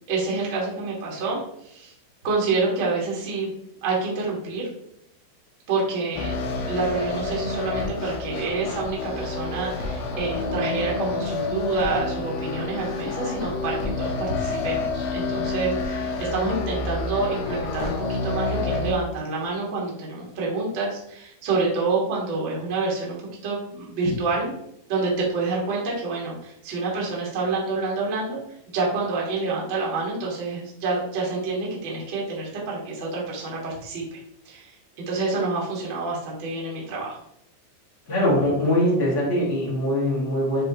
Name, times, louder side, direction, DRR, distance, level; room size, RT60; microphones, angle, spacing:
voice 1, 0.1-1.9 2.2-3.5 3.8-4.7 5.7-6.3 6.7-23.1 23.4-24.5 24.9-28.4 28.7-34.2 34.4-34.8 35.1-37.2, right 3 dB, 70° right, -4 dB, 1.1 m, -27 dB
sound 1, 6.1-18.9, left 3 dB, 75° left, 3.0 m, -29 dB
voice 2, 38.1-40.6, left 1 dB, 55° left, -8 dB, 0.8 m, -22 dB
9.6 x 3.6 x 3.0 m, 0.76 s
omnidirectional pair, 5.7 m